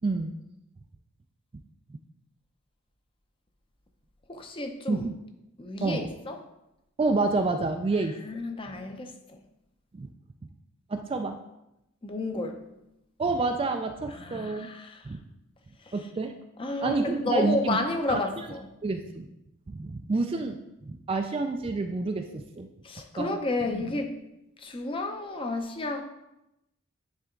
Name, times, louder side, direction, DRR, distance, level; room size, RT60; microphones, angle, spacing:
voice 1, 0.0-0.3 4.9-5.2 5.8-6.1 7.0-8.2 9.9-10.1 10.9-11.4 13.2-14.7 15.0-15.2 15.9-16.3 16.8-17.8 18.1-18.5 18.8-19.3 19.7-22.7 23.1-23.4 23.6-24.0, right 3 dB, 25° right, 5 dB, 0.3 m, -29 dB
voice 2, 4.3-5.1 5.6-6.3 8.3-9.4 12.0-12.6 14.1-15.0 16.6-18.7 22.8-24.2 24.6-26.0, left 2 dB, 25° left, 5 dB, 0.6 m, -31 dB
9.8 x 3.4 x 3.7 m, 0.89 s
head